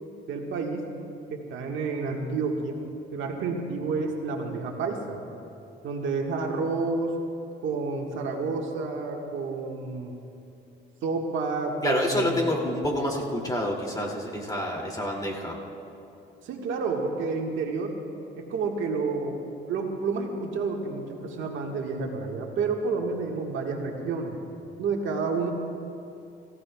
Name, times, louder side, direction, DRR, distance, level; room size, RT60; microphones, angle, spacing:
voice 1, 0.3-0.8 1.3-2.8 3.1-5.2 5.8-7.2 7.6-10.1 11.0-12.5 16.4-17.9 18.4-19.4 19.7-24.4 24.8-25.5, right 4 dB, 80° right, 1 dB, 1.6 m, -30 dB
voice 2, 11.8-15.6, left 1 dB, 20° left, -1 dB, 2.6 m, -28 dB
24.5 x 15.0 x 2.3 m, 2.7 s
cardioid pair, 90°, 20 cm